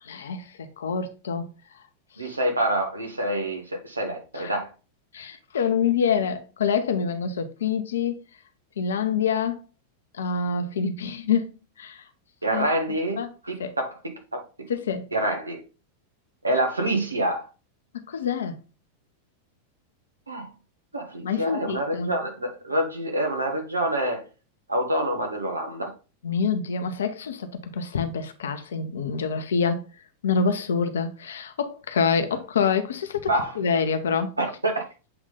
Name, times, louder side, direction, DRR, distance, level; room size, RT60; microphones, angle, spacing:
voice 1, 0.0-1.5 2.2-2.4 4.3-4.5 5.1-8.2 8.8-9.6 10.1-12.0 12.5-12.7 13.2-13.3 13.6-13.7 14.7-15.1 17.9-18.6 21.2-22.1 26.2-29.8 30.2-34.3, left 6 dB, 65° left, 0.9 m, -26 dB
voice 2, 2.2-4.7 12.4-13.2 13.4-14.4 15.1-15.6 16.4-17.5 20.3-20.5 20.9-24.2 24.7-25.9 33.3-33.5 34.4-34.8, right 1 dB, 80° right, 1.5 m, -26 dB
7.8 x 3.6 x 3.8 m
figure-of-eight pair, 90°, 0 cm